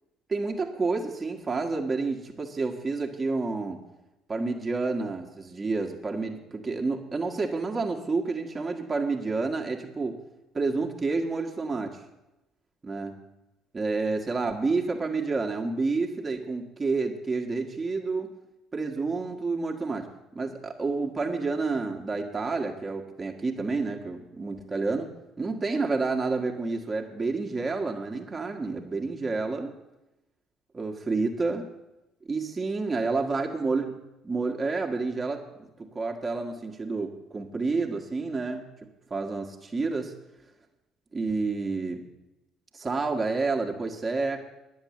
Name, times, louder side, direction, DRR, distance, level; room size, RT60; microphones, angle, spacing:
voice 1, 0.3-3.8 4.3-10.2 10.5-12.0 12.8-13.2 13.7-18.3 18.7-25.1 25.4-29.8 30.7-31.7 32.3-33.9 34.2-40.1 41.1-42.0 42.7-44.4, right 3 dB, 25° right, 1 dB, 1.7 m, -29 dB
10.5 x 7.1 x 9.0 m, 0.93 s
figure-of-eight pair, 50°, 0 cm